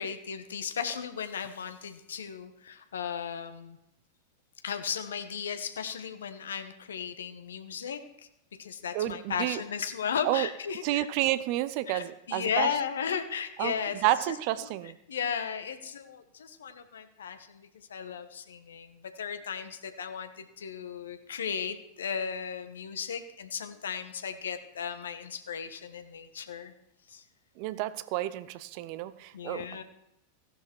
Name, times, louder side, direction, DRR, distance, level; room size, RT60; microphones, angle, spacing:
voice 1, 0.0-3.8 4.6-8.3 8.6-11.1 11.8-26.7 27.1-27.2 29.3-29.8, left 7 dB, 65° left, 10 dB, 1.3 m, -35 dB
voice 2, 8.9-9.6 10.2-10.5 10.8-12.7 13.6-13.7 14.0-15.0 27.6-29.7, right 15 dB, 45° right, 15 dB, 0.7 m, -30 dB
16.0 x 11.0 x 4.6 m, 0.84 s
figure-of-eight pair, 90°, 0 cm